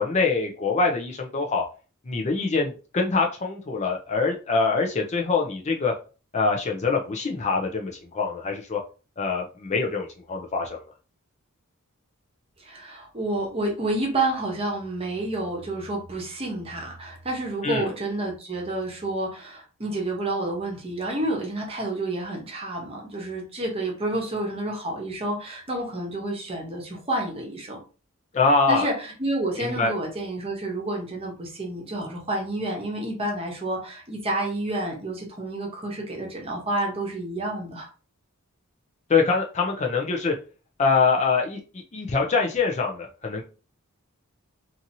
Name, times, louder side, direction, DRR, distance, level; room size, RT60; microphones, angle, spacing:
voice 1, 0.0-1.6 2.1-5.9 6.3-8.8 9.2-10.8 17.6-17.9 28.3-28.9 29.6-29.9 39.1-40.3 40.8-43.4, left 4 dB, 35° left, 1 dB, 0.5 m, -24 dB
voice 2, 12.6-27.8 28.7-37.9, right 2 dB, 30° right, 0 dB, 0.9 m, -29 dB
2.8 x 2.6 x 2.6 m, 0.35 s
head